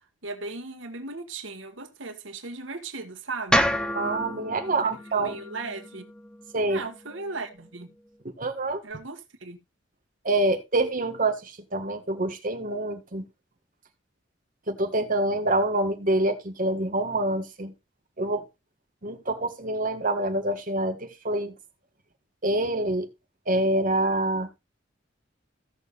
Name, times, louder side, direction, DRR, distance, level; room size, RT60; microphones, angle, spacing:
voice 1, 0.2-3.7 4.7-5.0 5.2-6.1 6.7-7.9 8.8-9.6, right 3 dB, 85° right, 1.9 m, -37 dB
sound 1, 3.5-7.7, equal, 5° left, 0.9 m, -29 dB
voice 2, 3.9-5.4 6.5-6.9 8.4-8.8 10.2-13.3 14.7-17.7 18.2-18.4 19.0-21.5 22.4-23.1 23.5-24.5, right 2 dB, 45° right, 1.8 m, -26 dB
16.5 x 6.7 x 2.6 m
head